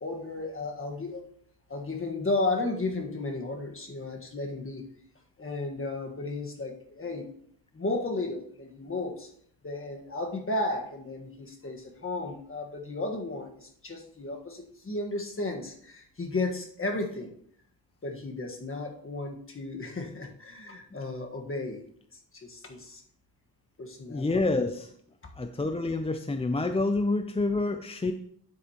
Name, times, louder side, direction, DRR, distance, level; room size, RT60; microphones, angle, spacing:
voice 1, 0.0-1.3 1.7-4.8 5.4-7.3 7.7-9.3 9.6-17.3 18.0-21.8 22.3-23.0 23.8-24.3 24.7-24.8, left 2 dB, 35° left, 2 dB, 1.5 m, -34 dB
voice 2, 24.1-24.9 25.4-28.1, left 2 dB, 15° left, 7 dB, 0.4 m, -28 dB
9.3 x 8.1 x 2.9 m, 0.64 s
wide cardioid pair, 115°, 38 cm